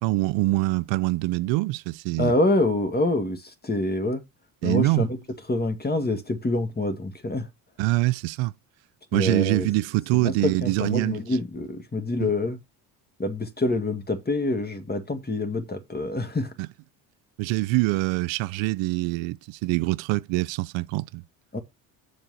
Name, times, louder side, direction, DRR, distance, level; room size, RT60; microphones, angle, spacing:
voice 1, 0.0-2.3 4.6-5.1 7.8-8.5 9.1-11.2 12.2-12.3 16.6-16.7 17.4-21.2, right 20 dB, 80° right, 0.6 m, -24 dB
voice 2, 2.2-4.2 4.6-5.2 5.5-7.5 9.1-9.7 10.1-12.6 13.2-16.5 21.5-21.6, left 2 dB, 20° left, 2.1 m, -26 dB
7.4 x 4.8 x 6.5 m
supercardioid pair, 75°, 45 cm